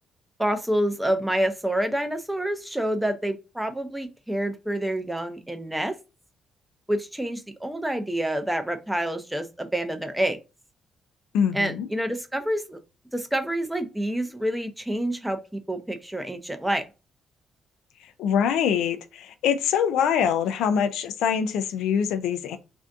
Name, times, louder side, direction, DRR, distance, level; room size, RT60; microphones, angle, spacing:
voice 1, 0.4-5.9 6.9-10.4 11.5-12.8 13.1-16.8, right 1 dB, 5° right, 0.6 m, -27 dB
voice 2, 11.3-11.9 18.0-22.6, left 8 dB, 90° left, 0.3 m, -24 dB
2.6 x 2.4 x 3.4 m
cardioid pair, 90°, 0 cm